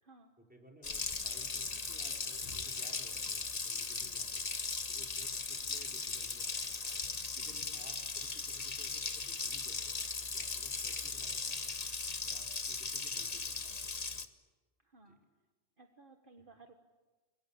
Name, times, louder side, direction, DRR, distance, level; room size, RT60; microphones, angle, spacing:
voice 1, 0.4-6.8 7.4-11.8 12.2-14.3 15.1-15.2, right 1 dB, 5° right, 0 dB, 5.1 m, -59 dB
Water tap faucet, 0.8-14.2, left 4 dB, 35° left, 1.3 m, -38 dB
voice 2, 14.8-15.2 15.8-16.7, right 3 dB, 50° right, 5 dB, 1.6 m, -59 dB
30.0 x 22.0 x 8.7 m, 1.3 s
omnidirectional pair, 1.2 m